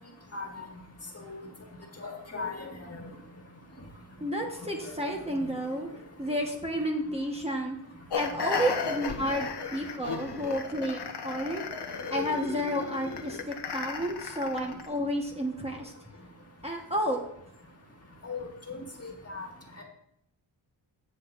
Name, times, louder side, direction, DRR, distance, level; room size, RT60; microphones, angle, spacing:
voice 1, 2.0-3.0 4.8-4.9 5.4-5.5 17.0-17.2 18.2-19.5 19.8-19.9, left 4 dB, 35° left, 1 dB, 1.8 m, -38 dB
voice 2, 4.2-5.9 6.2-7.8 8.1-11.6 12.1-15.9 16.6-17.2, equal, 15° right, 0 dB, 1.1 m, -31 dB
sound 1, 8.1-14.9, left 5 dB, 65° left, 1.0 m, -35 dB
16.0 x 6.3 x 2.5 m, 0.77 s
wide cardioid pair, 105°, 44 cm